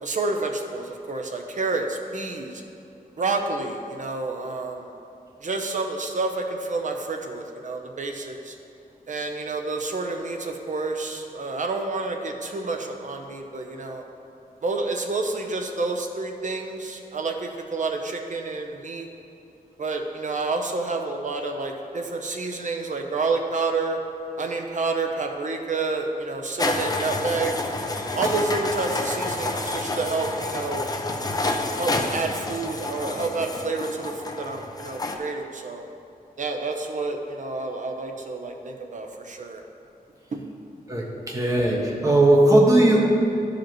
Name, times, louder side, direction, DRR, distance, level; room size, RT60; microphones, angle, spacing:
voice 1, 0.0-2.5 3.2-4.9 5.4-8.6 9.1-14.0 14.6-19.1 19.8-24.0 24.4-27.5 28.1-30.9 31.7-35.8 36.4-39.6 40.3-40.4, right 3 dB, 55° right, 3 dB, 0.7 m, -29 dB
sound 1, 26.6-35.2, left 2 dB, 25° left, 0.5 m, -29 dB
voice 2, 40.9-43.0, right 1 dB, 20° right, -3 dB, 1.2 m, -18 dB
13.0 x 5.0 x 3.1 m, 2.7 s
wide cardioid pair, 155°, 16 cm